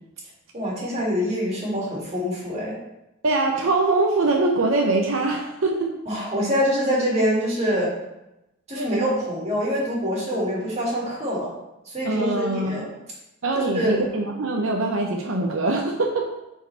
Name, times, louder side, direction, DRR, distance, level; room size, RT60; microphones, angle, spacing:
voice 1, 0.5-2.8 6.1-7.9 8.7-11.5 11.9-12.9 13.5-14.0, equal, 35° right, -5 dB, 2.6 m, -25 dB
voice 2, 3.2-5.9 8.8-9.0 12.0-12.9 13.4-16.3, right 2 dB, 85° right, 1 dB, 0.8 m, -23 dB
8.9 x 4.6 x 3.4 m, 0.91 s
head